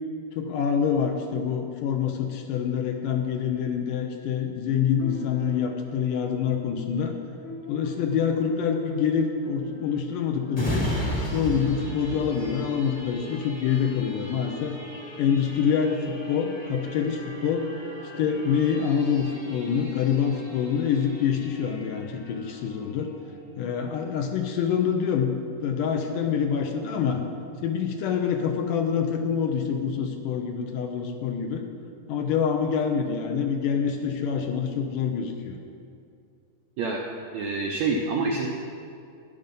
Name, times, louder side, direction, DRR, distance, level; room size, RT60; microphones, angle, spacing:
voice 1, 0.4-7.1 7.7-10.9 11.3-14.8 15.2-17.7 18.2-23.1 23.6-25.3 25.6-27.2 27.6-31.7 32.1-35.6, left 7 dB, 75° left, 4 dB, 2.1 m, -26 dB
sound 1, 5.0-16.2, left 2 dB, 45° left, 1.2 m, -44 dB
sound 2, 10.5-23.8 24.3-24.4, equal, 15° left, 1.0 m, -37 dB
voice 2, 37.3-38.5, right 4 dB, 80° right, 0 dB, 1.6 m, -26 dB
12.0 x 10.5 x 5.3 m, 2.4 s
omnidirectional pair, 4.2 m